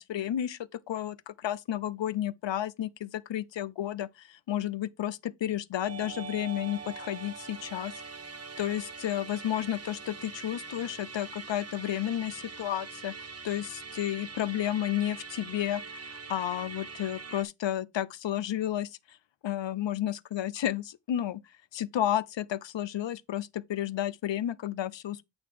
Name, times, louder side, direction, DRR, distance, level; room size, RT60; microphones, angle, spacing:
voice 1, 0.0-7.9 8.6-19.2 19.4-21.4 21.7-25.2, left 11 dB, 80° left, 0.6 m, -32 dB
Musical instrument, 5.8-17.4, right 4 dB, 35° right, 0.9 m, -43 dB
8.8 x 3.9 x 4.7 m
wide cardioid pair, 70°, 44 cm